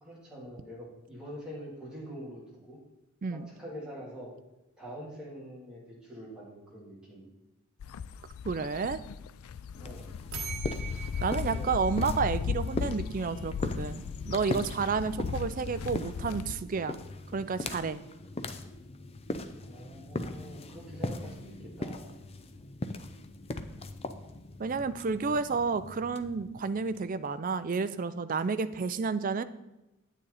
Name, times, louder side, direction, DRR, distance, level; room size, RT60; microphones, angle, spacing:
voice 1, 0.0-2.4 2.7-2.8 3.3-4.3 4.8-7.3 9.8-10.1 11.3-11.8 19.6-22.1, equal, 5° right, -6 dB, 3.0 m, -45 dB
sound 1, 7.8-16.6, left 6 dB, 80° left, 0.4 m, -37 dB
voice 2, 8.4-9.0 11.2-17.0 17.3-18.0 24.6-29.4, right 5 dB, 40° right, 12 dB, 0.4 m, -31 dB
sound 2, 9.7-27.3, left 2 dB, 30° left, 0.5 m, -40 dB
sound 3, 10.3-13.1, right 7 dB, 60° right, 1.4 m, -43 dB
9.2 x 8.8 x 4.1 m, 0.97 s
head